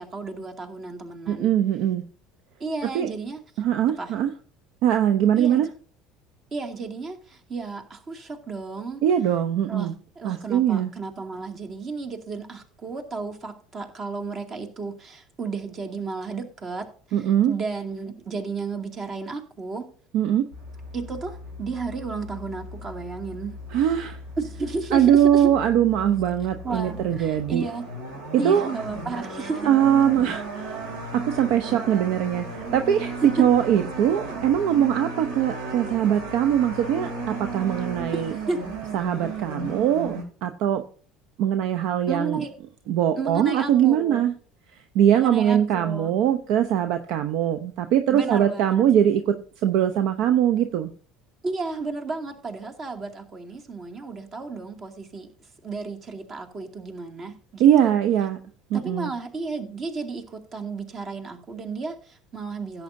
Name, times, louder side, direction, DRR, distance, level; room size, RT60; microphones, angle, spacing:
voice 1, 0.0-1.5 2.6-3.4 4.0-4.1 5.4-5.7 6.5-9.0 9.6-16.9 17.2-19.9 20.9-23.6 24.4-25.5 26.6-27.9 28.4-29.7 33.2-33.5 38.1-38.6 42.1-42.5 43.2-44.3 45.1-46.1 48.1-48.8 51.4-55.3 55.6-58.0 58.7-62.8, right 4 dB, 40° right, 4 dB, 2.3 m, -33 dB
voice 2, 1.3-2.0 2.9-3.1 3.6-4.3 4.8-5.7 9.0-9.9 10.2-10.9 17.1-17.5 20.1-20.5 23.7-24.2 24.9-27.6 28.4-28.7 29.7-30.8 31.1-38.3 38.9-40.8 41.4-42.4 42.9-44.3 44.9-49.4 49.6-50.9 57.6-58.4 58.7-59.1, right 10 dB, 60° right, 9 dB, 0.7 m, -21 dB
sound 1, 20.5-40.2, right 2 dB, 75° right, 3.3 m, -35 dB
16.5 x 8.0 x 2.7 m, 0.43 s
hypercardioid pair, 70°, 0 cm